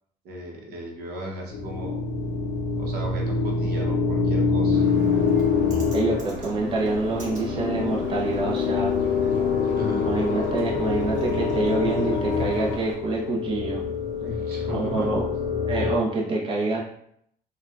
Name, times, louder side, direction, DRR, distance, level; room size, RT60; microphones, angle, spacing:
voice 1, 0.2-2.0 2.7-4.9 9.7-10.1 14.2-15.2, equal, 70° right, -1 dB, 0.9 m, -36 dB
sound 1, 1.5-16.0, left 5 dB, 85° left, 0.5 m, -25 dB
Bird, 4.7-12.9, right 1 dB, 45° right, 1.2 m, -42 dB
voice 2, 5.9-9.0 10.0-13.8 14.7-15.2 15.7-16.8, right 2 dB, 30° right, -3 dB, 0.7 m, -26 dB
4.2 x 2.3 x 2.4 m, 0.70 s
cardioid pair, 110°, 17 cm